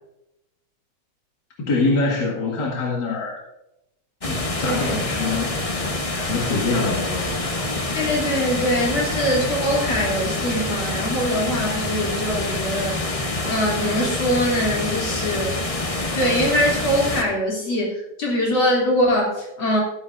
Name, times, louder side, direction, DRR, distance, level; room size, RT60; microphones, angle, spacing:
voice 1, 1.6-3.4 4.2-5.9 6.2-7.6, left 3 dB, 60° left, -3 dB, 2.4 m, -25 dB
sound 1, 4.2-17.2, left 2 dB, 30° left, 0.6 m, -26 dB
voice 2, 4.6-5.0 7.9-13.2 13.5-15.6 16.1-19.8, equal, 75° left, -3 dB, 3.9 m, -23 dB
13.5 x 12.5 x 2.6 m, 0.89 s
omnidirectional pair, 2.2 m